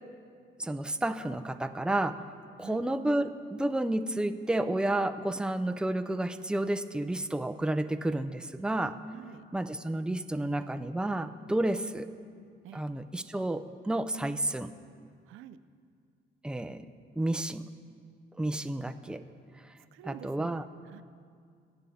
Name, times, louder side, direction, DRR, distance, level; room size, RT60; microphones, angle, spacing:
voice 1, 0.6-2.2 2.6-9.0 9.5-12.1 12.7-14.7 16.4-16.9 17.2-17.6 18.4-19.2 20.0-20.6, right 1 dB, 5° right, 9 dB, 0.5 m, -31 dB
voice 2, 9.1-9.5 12.6-12.8 15.3-15.6 19.9-21.0, right 12 dB, 90° right, 12 dB, 0.5 m, -48 dB
21.5 x 8.1 x 4.2 m, 2.2 s
cardioid pair, 90°, 20 cm